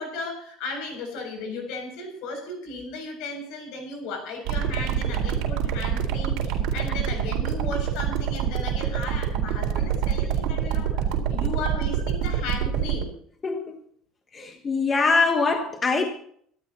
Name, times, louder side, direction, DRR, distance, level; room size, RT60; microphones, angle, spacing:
voice 1, 0.0-13.2, left 2 dB, 65° left, 4 dB, 7.0 m, -35 dB
sound 1, 4.5-13.0, right 9 dB, 65° right, 4.0 m, -25 dB
voice 2, 13.4-13.8 14.3-16.0, left 4 dB, 20° left, 4 dB, 1.2 m, -23 dB
25.5 x 12.5 x 3.0 m, 0.62 s
cardioid pair, 180°, 0 cm